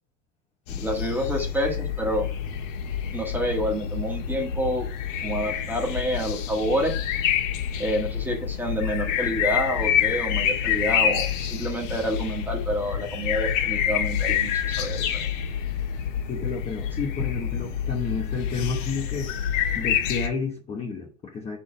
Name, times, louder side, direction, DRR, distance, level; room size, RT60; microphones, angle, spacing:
sound 1, 0.7-20.3, left 9 dB, 70° left, 1.6 m, -27 dB
voice 1, 0.7-2.3 3.1-4.9 5.2-7.0 7.8-15.3, equal, 5° right, 1 dB, 1.4 m, -28 dB
voice 2, 16.3-19.3 19.7-21.6, left 4 dB, 15° left, -1 dB, 0.9 m, -31 dB
7.0 x 4.4 x 4.8 m, 0.37 s
supercardioid pair, 155°, 39 cm